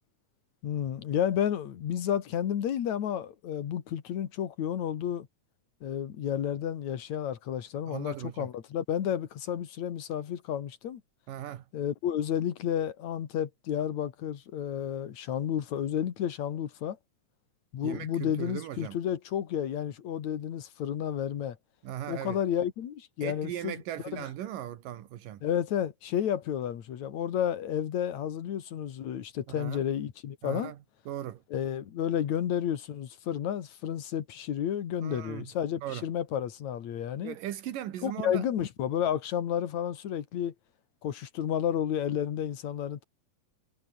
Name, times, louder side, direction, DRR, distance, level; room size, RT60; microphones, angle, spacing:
voice 1, 0.6-5.3 5.8-11.0 11.7-17.0 17.7-21.6 22.1-23.8 24.1-24.2 25.4-30.7 31.5-37.4 38.0-40.5 41.0-43.0, left 9 dB, 60° left, 3.0 m, -31 dB
voice 2, 7.9-8.5 11.3-11.7 17.8-19.0 21.8-22.4 23.2-25.4 29.5-29.8 30.4-30.8 31.1-31.4 35.0-35.5 35.8-36.1 37.2-38.4, right 12 dB, 85° right, 3.1 m, -38 dB
omnidirectional pair, 3.7 m